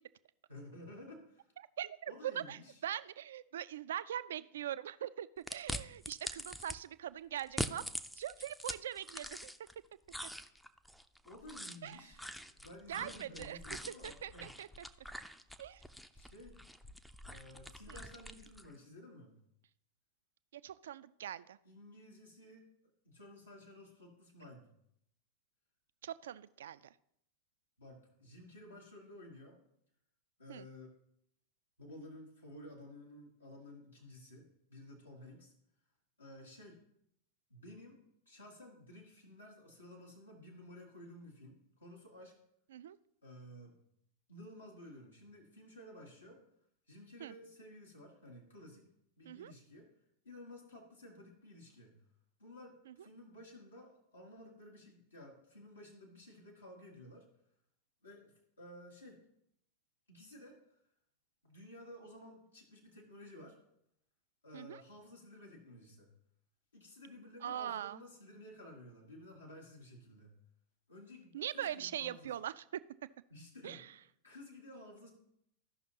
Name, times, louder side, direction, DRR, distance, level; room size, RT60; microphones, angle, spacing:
voice 1, 0.5-1.5 2.1-2.8 11.2-12.2 12.6-14.5 16.1-16.6 17.2-19.3 21.6-22.6 23.0-24.7 27.8-29.6 30.4-30.9 31.8-35.5 36.2-36.8 37.5-38.0 38.2-42.3 43.2-43.8 44.3-46.4 46.9-48.9 49.2-49.9 50.2-51.9 52.4-57.2 58.0-59.2 60.1-60.6 61.4-63.6 64.4-66.1 66.7-70.3 70.9-72.3 73.3-75.1, left 1 dB, 80° left, -2 dB, 1.6 m, -54 dB
voice 2, 1.8-7.9 8.2-9.5 11.8-12.1 12.9-13.6 13.9-14.7 15.6-15.8 17.9-18.0 20.5-21.6 26.0-26.8 30.5-30.7 42.7-43.0 47.2-47.3 49.3-49.5 52.9-53.0 64.5-64.8 67.4-68.0 71.3-72.8 73.6-73.9, right 11 dB, 60° right, 16 dB, 0.3 m, -42 dB
sound 1, 5.5-6.8 7.4-9.7 10.1-18.7, equal, ahead, 0.4 m, -44 dB
14.5 x 5.6 x 2.9 m, 0.75 s
figure-of-eight pair, 90°, 0 cm